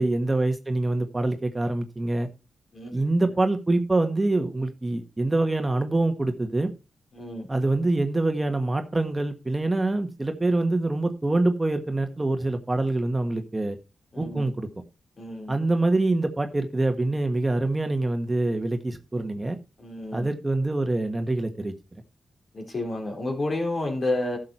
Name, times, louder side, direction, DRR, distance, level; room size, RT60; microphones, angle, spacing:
voice 1, 0.0-2.3 2.9-6.7 7.5-13.8 14.2-14.7 15.5-19.6 20.1-21.7, right 2 dB, 25° right, 6 dB, 1.6 m, -25 dB
voice 2, 7.1-7.5 14.1-14.5 15.2-15.6 19.8-20.3 22.5-24.4, left 2 dB, 50° left, 2 dB, 4.4 m, -30 dB
11.5 x 6.5 x 4.4 m, 0.30 s
supercardioid pair, 50°, 0 cm